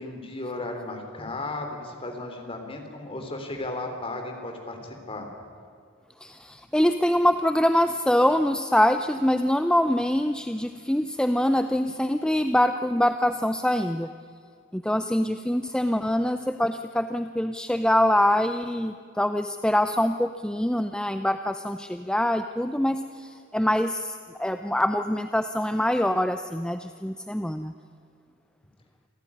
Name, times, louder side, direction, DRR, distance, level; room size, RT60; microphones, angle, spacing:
voice 1, 0.0-5.3, left 2 dB, 30° left, 4 dB, 3.4 m, -35 dB
voice 2, 6.2-14.1 14.7-27.7, left 1 dB, 5° left, 9 dB, 0.5 m, -24 dB
27.0 x 15.0 x 9.9 m, 2.3 s
head